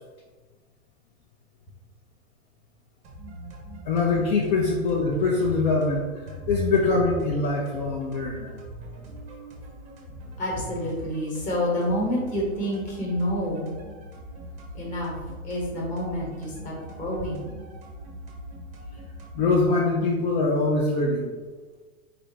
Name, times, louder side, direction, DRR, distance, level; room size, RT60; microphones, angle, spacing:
sound 1, 3.0-19.7, right 1 dB, 20° right, 0.6 m, -42 dB
voice 1, 3.9-8.5 19.3-21.3, left 3 dB, 50° left, -2 dB, 0.6 m, -23 dB
voice 2, 10.4-13.7 14.7-15.2 15.4-17.6, equal, 20° left, -4 dB, 1.1 m, -28 dB
3.4 x 2.6 x 4.3 m, 1.3 s
hypercardioid pair, 145°, 41 cm